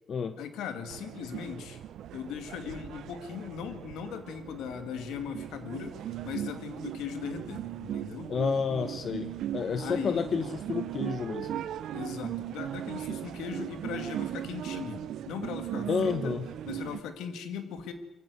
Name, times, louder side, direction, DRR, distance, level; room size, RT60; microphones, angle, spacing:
voice 1, 0.4-1.8 2.1-8.3 9.8-10.3 11.9-16.4 16.7-17.9, left 7 dB, 85° left, 9 dB, 2.3 m, -39 dB
sound 1, 0.9-17.0, right 11 dB, 75° right, 0.7 m, -38 dB
voice 2, 8.3-11.5 15.9-16.5, left 6 dB, 50° left, 11 dB, 1.0 m, -30 dB
22.5 x 15.5 x 8.0 m, 1.0 s
cardioid pair, 90°, 0 cm